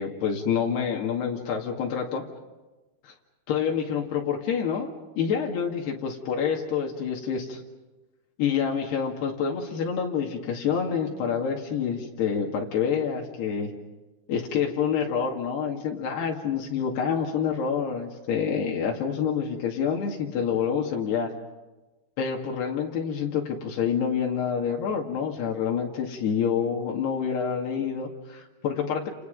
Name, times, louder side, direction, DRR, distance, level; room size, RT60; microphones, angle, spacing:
voice 1, 0.0-2.2 3.0-3.1 3.5-4.9 5.2-7.6 8.4-13.7 14.3-21.3 22.2-29.1, left 7 dB, 85° left, 0 dB, 4.4 m, -27 dB
29.5 x 29.5 x 5.4 m, 1.1 s
omnidirectional pair, 4.6 m